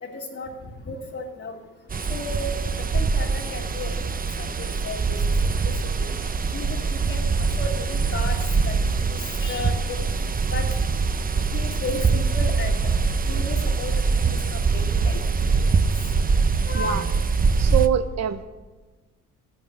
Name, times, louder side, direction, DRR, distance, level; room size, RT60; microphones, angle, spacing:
voice 1, 0.0-0.6 0.8-1.6 2.1-6.1 6.5-10.1 10.5-10.8 11.5-12.9 13.2-15.8 16.6-17.2, left 3 dB, 45° left, -3 dB, 2.6 m, -35 dB
sound 1, 1.9-17.9, right 4 dB, 30° right, 0.8 m, -23 dB
voice 2, 16.7-17.1 17.6-18.4, right 10 dB, 60° right, 11 dB, 1.2 m, -24 dB
13.5 x 11.5 x 8.4 m, 1.2 s
cardioid pair, 90°, 30 cm